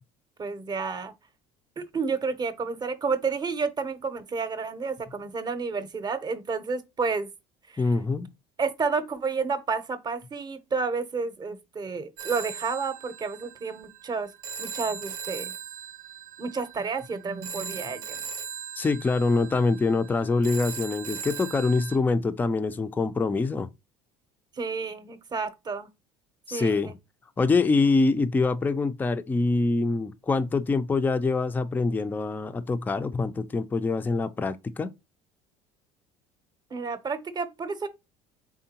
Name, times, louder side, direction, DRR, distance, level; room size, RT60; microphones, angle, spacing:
voice 1, 0.4-1.1 1.8-7.3 7.7-7.9 8.6-14.3 14.6-15.5 16.4-18.2 24.6-25.9 26.5-26.9 36.7-37.9, right 4 dB, 25° right, 0.7 m, -30 dB
voice 2, 7.8-8.3 18.8-23.7 26.5-26.9 27.4-34.9, left 3 dB, 10° left, 0.4 m, -25 dB
Telephone, 12.2-22.0, right 7 dB, 90° right, 0.7 m, -39 dB
3.6 x 3.6 x 2.8 m
supercardioid pair, 95°, 15 cm